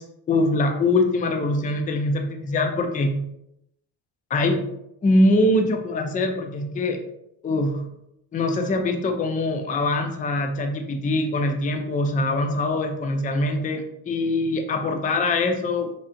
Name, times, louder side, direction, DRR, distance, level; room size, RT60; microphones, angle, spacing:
voice 1, 0.0-3.2 4.3-4.7 5.0-7.0 7.4-7.8 8.3-15.9, left 2 dB, 15° left, 5 dB, 0.4 m, -23 dB
3.3 x 2.5 x 2.6 m, 0.82 s
hypercardioid pair, 50°, 50 cm